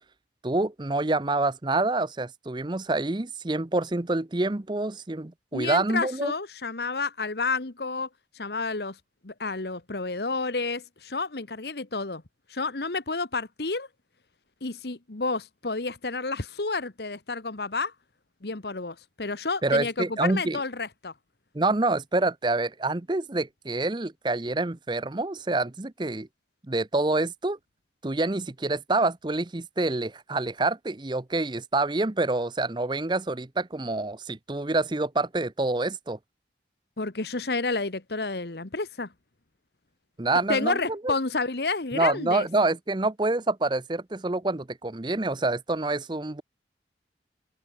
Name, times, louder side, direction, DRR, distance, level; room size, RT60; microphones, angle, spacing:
voice 1, 0.4-6.3 19.6-20.6 21.5-26.3 26.7-27.6 28.0-36.2 40.2-41.1 41.9-46.4, right 2 dB, 25° right, 0.7 m, -27 dB
voice 2, 5.5-8.1 8.3-9.0 9.2-12.2 12.5-13.9 14.6-17.9 18.4-21.1 37.0-39.1 40.5-42.5, left 3 dB, 65° left, 1.4 m, -30 dB
open air
head